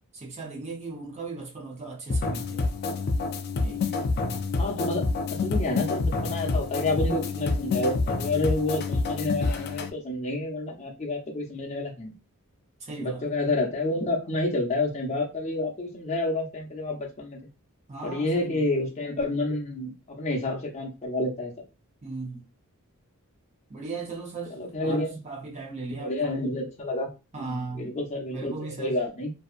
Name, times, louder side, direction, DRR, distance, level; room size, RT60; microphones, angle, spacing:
voice 1, 0.1-2.7 3.6-3.9 12.8-13.2 17.9-18.7 22.0-22.4 23.7-24.6 24.8-26.4 27.3-27.9 28.3-28.9, right 3 dB, 30° right, 0.7 m, -37 dB
sound 1, 2.1-9.9, left 3 dB, 45° left, 0.3 m, -28 dB
voice 2, 4.6-5.1 5.4-12.1 13.0-17.4 18.0-21.5 24.6-25.2 25.9-27.1 27.4-29.3, left 2 dB, 30° left, 0.7 m, -29 dB
2.7 x 2.3 x 2.4 m
head